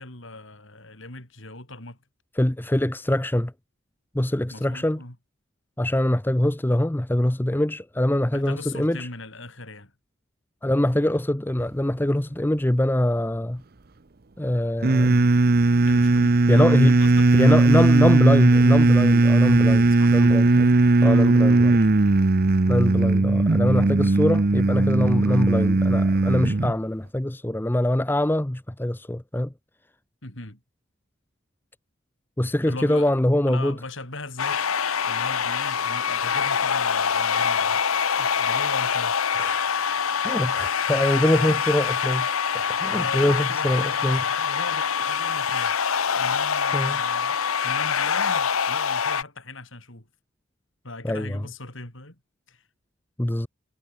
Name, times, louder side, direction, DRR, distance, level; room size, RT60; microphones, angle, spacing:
voice 1, 0.0-2.0 4.5-5.2 8.3-9.9 15.9-18.0 19.8-20.2 21.0-21.7 30.2-30.6 32.7-33.1 33.5-34.6 35.0-37.8 38.2-39.4 41.3-41.6 42.9-45.8 46.1-47.4 47.6-50.1 50.8-52.2 52.5-52.6, left 2 dB, 60° left, 4.9 m, -39 dB
voice 2, 2.4-3.5 4.1-5.0 5.8-9.1 10.6-13.6 14.4-15.3 16.5-16.9 17.4-20.7 21.0-21.8 22.7-29.5 32.4-33.8 39.4-39.7 40.2-42.3 42.8-44.2 46.7-47.0 51.0-51.4 53.2-53.5, left 1 dB, 10° left, 0.6 m, -23 dB
sound 1, 14.8-26.7, right 2 dB, 45° right, 0.7 m, -18 dB
sound 2, 34.4-49.2, left 7 dB, 80° left, 1.1 m, -25 dB
head